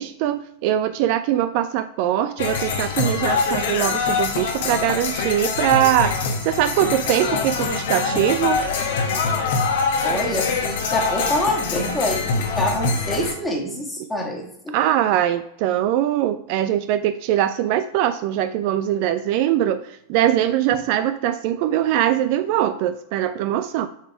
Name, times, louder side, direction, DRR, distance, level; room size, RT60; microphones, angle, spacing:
voice 1, 0.0-8.6 14.7-23.9, right 12 dB, 45° right, 11 dB, 0.3 m, -22 dB
sound 1, 2.4-13.3, left 4 dB, 55° left, 1.0 m, -24 dB
voice 2, 10.0-14.7, equal, 10° left, -1 dB, 1.6 m, -26 dB
7.2 x 3.9 x 4.6 m, 0.77 s
figure-of-eight pair, 90°, 0 cm